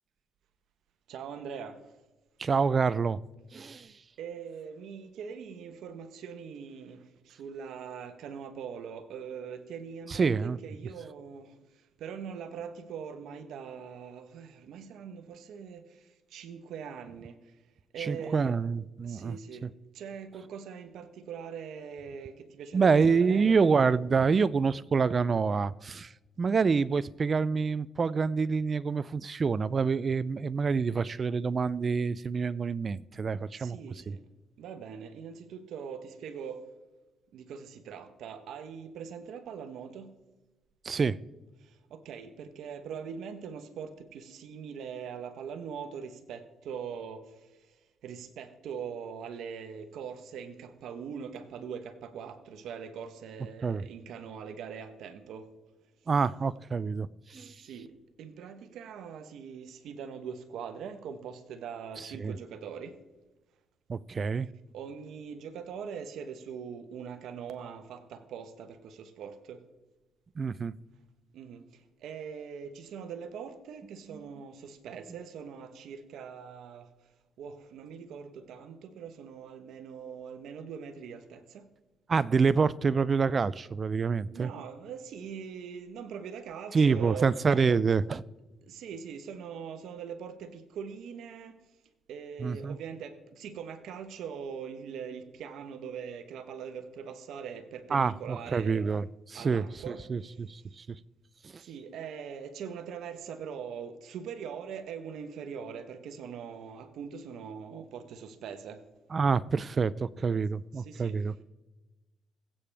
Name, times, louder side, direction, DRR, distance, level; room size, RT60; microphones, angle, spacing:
voice 1, 1.1-1.8 4.2-11.5 12.0-17.4 17.9-18.6 19.0-19.7 19.9-23.6 33.5-34.3 34.6-36.7 37.3-40.2 41.6-47.4 48.0-55.5 57.3-57.9 58.2-63.0 64.7-69.6 71.3-71.6 72.0-76.9 77.4-81.7 84.3-87.3 88.6-91.6 92.1-98.8 99.3-100.0 101.6-108.8 110.8-111.2, right 7 dB, 80° right, 1.1 m, -42 dB
voice 2, 2.4-3.2 3.5-3.9 10.1-10.6 18.0-19.7 22.7-26.1 26.4-33.8 34.1-34.2 40.8-41.2 53.6-53.9 56.1-57.5 62.0-62.3 63.9-64.5 70.4-70.7 74.1-74.2 82.1-84.5 86.7-88.2 92.4-92.8 97.9-99.6 100.1-100.8 101.4-101.5 109.1-111.4, right 5 dB, 40° right, 0.4 m, -27 dB
21.0 x 8.6 x 3.4 m
cardioid pair, 90°, 0 cm